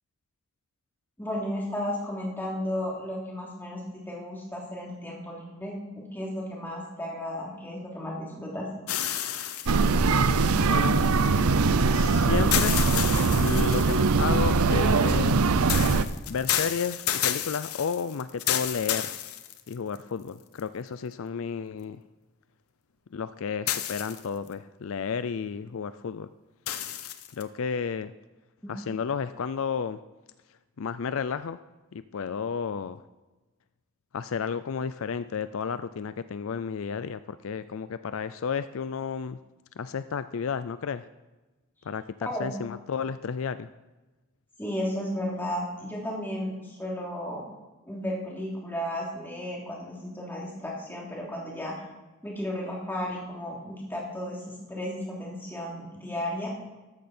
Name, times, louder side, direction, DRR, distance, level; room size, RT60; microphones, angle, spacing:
voice 1, 1.2-8.7 42.2-42.5 44.6-47.4 47.9-51.8 52.2-56.5, left 1 dB, 10° left, -3 dB, 3.1 m, -34 dB
sound 1, 8.9-11.1 12.5-14.1 15.7-20.0 20.6-20.7 23.7-24.5 26.7-27.4, left 11 dB, 90° left, 0.9 m, -31 dB
sound 2, 9.7-16.0, right 4 dB, 85° right, 0.6 m, -22 dB
voice 2, 11.9-12.8 13.4-15.7 16.3-19.1 19.7-22.0 23.1-26.3 27.3-28.1 28.7-30.0 30.8-31.6 31.9-33.0 34.1-39.4 39.8-41.0 41.9-42.0 42.4-43.7, left 6 dB, 70° left, 13 dB, 0.4 m, -32 dB
13.5 x 13.0 x 4.4 m, 1.1 s
head